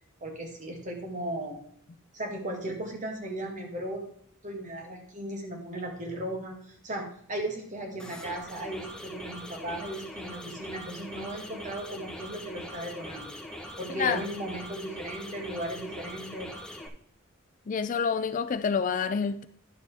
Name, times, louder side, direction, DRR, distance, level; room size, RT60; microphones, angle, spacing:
voice 1, 0.2-1.6 2.1-4.0 4.4-13.3 13.8-16.5, right 1 dB, 40° right, 2 dB, 1.8 m, -36 dB
sound 1, 8.0-16.9, equal, 5° left, 1.0 m, -42 dB
voice 2, 17.7-19.5, left 6 dB, 40° left, 12 dB, 0.4 m, -27 dB
10.5 x 6.7 x 3.4 m, 0.63 s
head